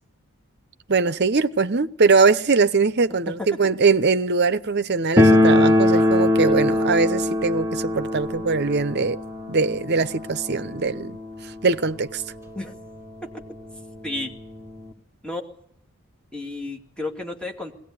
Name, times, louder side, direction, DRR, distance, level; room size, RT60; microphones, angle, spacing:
voice 1, 0.9-9.2 9.5-11.2 11.6-12.2, right 4 dB, 50° right, 0.8 m, -21 dB
sound 1, 5.2-11.9 12.1-12.2 12.5-12.6 13.3-13.4 13.7-14.9, left 1 dB, 10° right, 1.5 m, -21 dB
voice 2, 16.3-17.7, left 2 dB, 5° left, 2.3 m, -32 dB
21.0 x 18.0 x 9.5 m
head